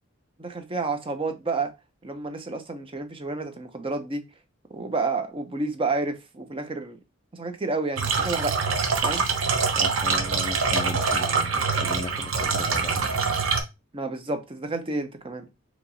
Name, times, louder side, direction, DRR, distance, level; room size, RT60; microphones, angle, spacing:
voice 1, 0.4-1.7 2.0-4.2 4.7-7.0 7.3-8.6 9.0-9.3 13.9-15.5, right 3 dB, 25° right, 0.5 m, -30 dB
sound 1, 8.0-13.6, right 5 dB, 85° right, 0.7 m, -24 dB
voice 2, 9.7-13.2, left 2 dB, 25° left, 0.3 m, -36 dB
4.4 x 2.8 x 2.6 m
head